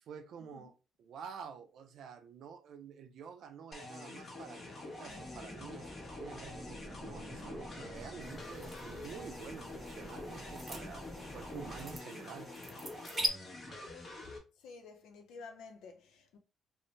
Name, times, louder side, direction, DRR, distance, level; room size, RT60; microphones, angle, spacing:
voice 1, 0.1-12.5 13.7-13.8, right 7 dB, 70° right, 0.4 m, -49 dB
sound 1, 3.7-14.4, left 2 dB, 35° left, 1.0 m, -47 dB
sound 2, 5.0-12.0, left 1 dB, 15° left, 0.6 m, -49 dB
sound 3, 8.2-13.3, right 1 dB, 25° right, 0.8 m, -42 dB
voice 2, 14.6-16.4, left 4 dB, 90° left, 0.6 m, -51 dB
2.6 x 2.1 x 3.1 m
cardioid pair, 90°, 0 cm